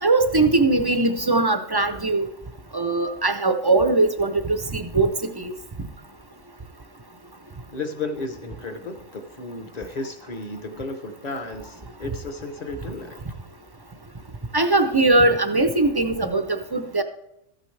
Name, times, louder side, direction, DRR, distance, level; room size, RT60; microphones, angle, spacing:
voice 1, 0.0-2.3 2.7-5.5 14.5-17.0, right 2 dB, 30° right, 8 dB, 0.5 m, -20 dB
voice 2, 7.7-13.2, left 3 dB, 40° left, 7 dB, 1.0 m, -33 dB
13.5 x 8.9 x 3.3 m, 0.81 s
omnidirectional pair, 1.2 m